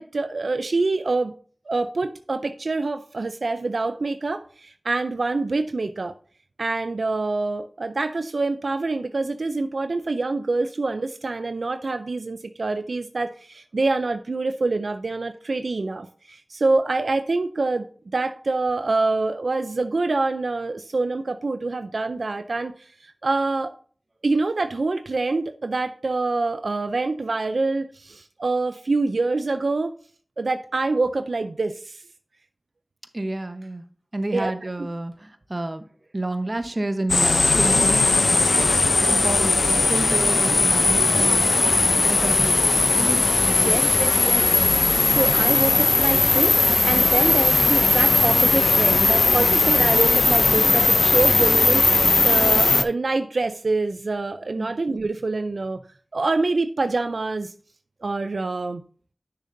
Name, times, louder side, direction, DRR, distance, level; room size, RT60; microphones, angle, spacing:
voice 1, 0.0-1.3 1.7-6.1 6.6-17.9 18.1-23.7 24.2-29.9 30.4-32.0 34.3-34.5 43.6-44.5 45.0-55.8 56.1-57.5 58.0-58.8, right 3 dB, 90° right, 9 dB, 0.4 m, -26 dB
voice 2, 33.1-33.9 34.1-35.8 36.1-38.4 39.0-41.6 42.1-43.7 45.0-45.2 54.6-54.7, right 2 dB, 45° right, 9 dB, 0.9 m, -30 dB
sound 1, 37.1-52.8, left 3 dB, 80° left, 0.5 m, -18 dB
9.9 x 6.5 x 2.6 m, 0.43 s
wide cardioid pair, 45°, 0 cm